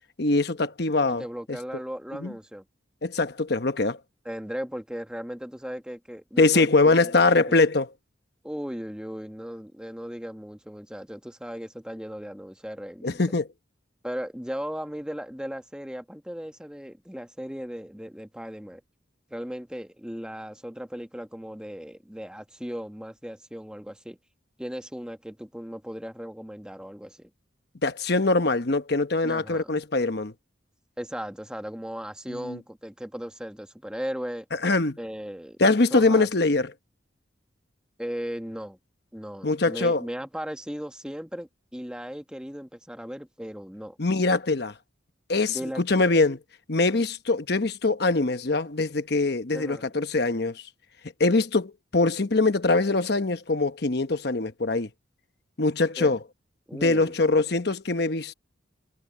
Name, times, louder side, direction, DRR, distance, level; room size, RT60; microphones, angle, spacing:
voice 1, 0.2-1.6 2.2-2.3 3.0-4.0 6.4-7.9 13.0-13.5 27.8-30.3 32.4-32.6 34.6-35.0 35.6-36.7 39.4-40.0 44.0-44.7 45.3-46.4 46.7-50.6 51.2-54.9 55.6-56.2 56.7-58.3, left 3 dB, 55° left, 1.1 m, -23 dB
voice 2, 1.1-2.6 4.2-7.4 8.4-13.2 14.0-18.8 19.3-24.2 24.6-27.3 29.2-29.7 31.0-34.5 35.0-35.6 35.9-36.3 38.0-38.8 39.1-44.0 45.5-46.0 49.5-49.9 56.0-56.2 56.7-57.1, equal, 5° right, 1.3 m, -37 dB
head